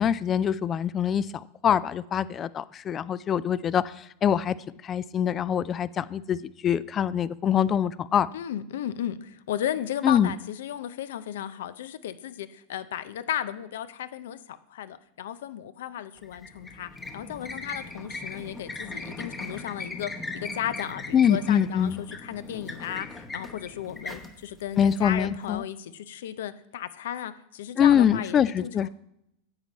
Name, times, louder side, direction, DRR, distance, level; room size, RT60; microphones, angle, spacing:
voice 1, 0.0-4.6 4.8-8.3 10.0-10.3 21.1-22.0 24.8-25.6 27.8-28.9, left 9 dB, 25° left, 18 dB, 0.3 m, -24 dB
voice 2, 8.3-28.9, left 10 dB, 80° left, 14 dB, 0.6 m, -35 dB
sound 1, 16.2-25.5, left 3 dB, 10° left, 0.9 m, -39 dB
9.9 x 7.5 x 4.1 m, 0.79 s
supercardioid pair, 135°, 0 cm